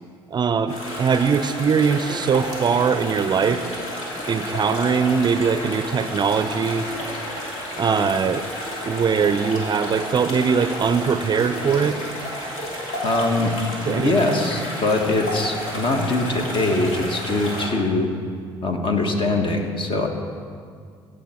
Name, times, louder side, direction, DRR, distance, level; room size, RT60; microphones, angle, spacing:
voice 1, 0.3-3.6 4.3-6.9 7.8-8.5 8.8-12.0 13.9-14.1, right 6 dB, 35° right, 11 dB, 0.5 m, -21 dB
sound 1, 0.7-17.7, equal, 65° left, 2.7 m, -31 dB
voice 2, 13.0-13.5 13.8-18.1 18.6-20.1, left 2 dB, 45° left, 3 dB, 1.5 m, -22 dB
16.0 x 6.7 x 4.3 m, 2.1 s
hypercardioid pair, 55°, 12 cm